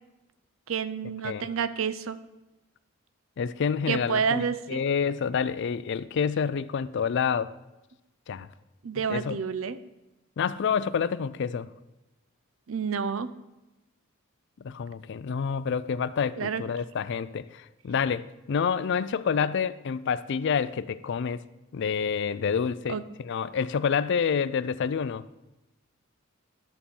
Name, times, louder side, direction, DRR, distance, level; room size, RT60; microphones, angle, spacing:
voice 1, 0.7-2.2 3.9-4.8 8.8-9.8 12.7-13.3 16.4-16.6 22.9-23.0, right 6 dB, 70° right, 14 dB, 0.5 m, -29 dB
voice 2, 3.4-7.5 8.3-8.5 9.1-9.4 10.4-11.7 14.6-21.4 21.7-25.3, left 6 dB, 55° left, 16 dB, 0.4 m, -28 dB
11.5 x 4.3 x 7.0 m, 1.0 s
head